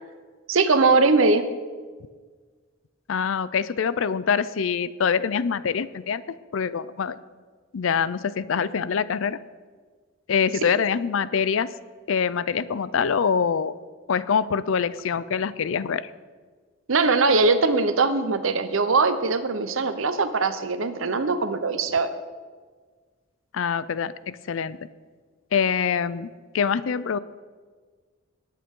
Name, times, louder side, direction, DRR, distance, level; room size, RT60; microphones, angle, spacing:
voice 1, 0.5-1.4 16.9-22.1, right 3 dB, 75° right, 10 dB, 0.9 m, -21 dB
voice 2, 3.1-6.2 6.5-7.2 7.7-9.4 10.3-11.7 12.1-13.7 14.1-16.1 23.5-24.8 25.5-26.3 26.5-27.2, left 6 dB, 75° left, 17 dB, 0.4 m, -24 dB
19.0 x 8.4 x 3.7 m, 1.5 s
head